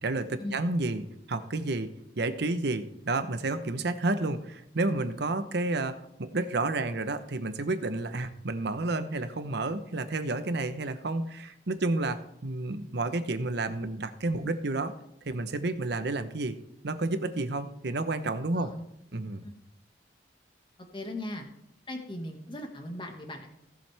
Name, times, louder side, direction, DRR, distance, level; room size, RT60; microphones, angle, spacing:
voice 1, 0.0-14.9 15.3-16.6 16.8-18.7 19.1-19.4, right 2 dB, 65° right, 11 dB, 0.9 m, -31 dB
voice 2, 18.5-18.8 19.4-19.5 20.9-21.5 21.9-23.5, left 1 dB, 30° left, 3 dB, 1.8 m, -38 dB
17.5 x 7.5 x 3.4 m, 0.76 s
head